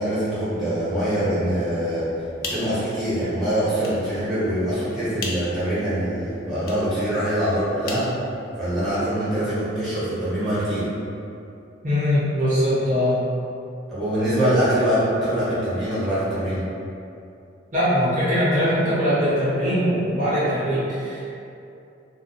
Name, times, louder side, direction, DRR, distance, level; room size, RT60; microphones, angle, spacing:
voice 1, 0.0-2.1 2.4-8.1 8.6-10.9 13.9-16.6, right 1 dB, ahead, -13 dB, 1.1 m, -24 dB
sound 1, 2.1-8.9, left 3 dB, 55° left, 0.4 m, -39 dB
voice 2, 11.8-13.2 17.7-21.3, equal, 40° right, -11 dB, 0.6 m, -21 dB
2.4 x 2.2 x 3.9 m, 2.7 s
head